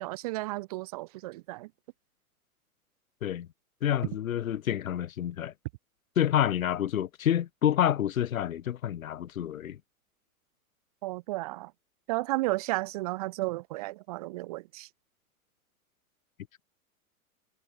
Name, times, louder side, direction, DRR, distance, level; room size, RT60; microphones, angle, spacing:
voice 1, 0.0-1.7 11.0-11.7 12.1-14.9, right 20 dB, 25° right, 0.5 m, -33 dB
voice 2, 3.8-5.5 6.2-9.8, left 10 dB, 65° left, 0.9 m, -28 dB
figure-of-eight pair, 100°, 44 cm